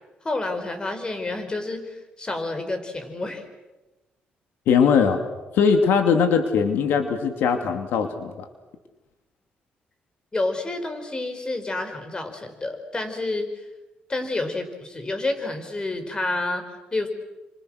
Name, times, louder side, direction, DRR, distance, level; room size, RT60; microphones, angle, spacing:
voice 1, 0.2-3.4 10.3-13.7 14.1-17.1, left 2 dB, 25° left, 7 dB, 5.1 m, -29 dB
voice 2, 4.7-5.2 5.6-8.3, left 6 dB, 90° left, 6 dB, 2.6 m, -20 dB
30.0 x 26.5 x 6.5 m, 1.1 s
cardioid pair, 100°, 4 cm